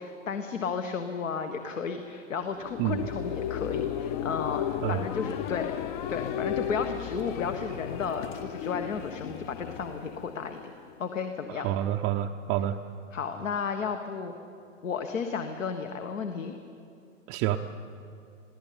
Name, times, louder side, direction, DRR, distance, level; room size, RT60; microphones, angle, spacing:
voice 1, 0.0-5.7 6.1-10.6 11.0-11.7 13.1-14.3 14.8-16.5, left 6 dB, 75° left, 6 dB, 1.5 m, -33 dB
sound 1, 2.4-11.1, left 10 dB, 40° left, 0.6 m, -35 dB
voice 2, 11.5-12.8 17.3-17.6, right 12 dB, 25° right, 3 dB, 0.5 m, -28 dB
22.0 x 15.0 x 8.7 m, 2.6 s
hypercardioid pair, 120°, 39 cm